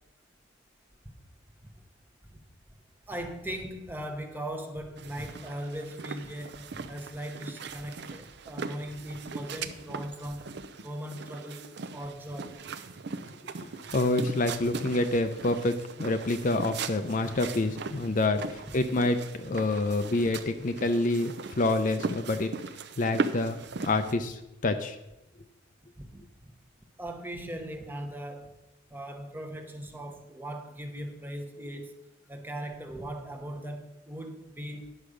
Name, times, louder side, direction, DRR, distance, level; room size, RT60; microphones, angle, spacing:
voice 1, 3.1-10.6 10.8-11.7 11.9-12.5 14.6-14.7 17.9-18.0 26.0-26.5 27.0-28.6 28.9-31.9 32.3-34.9, right 1 dB, 10° right, 0.8 m, -39 dB
sound 1, 5.0-24.1, right 4 dB, 60° right, 0.5 m, -39 dB
voice 2, 13.6-22.5 23.0-25.0, left 2 dB, 40° left, 0.5 m, -27 dB
10.0 x 4.8 x 6.5 m
head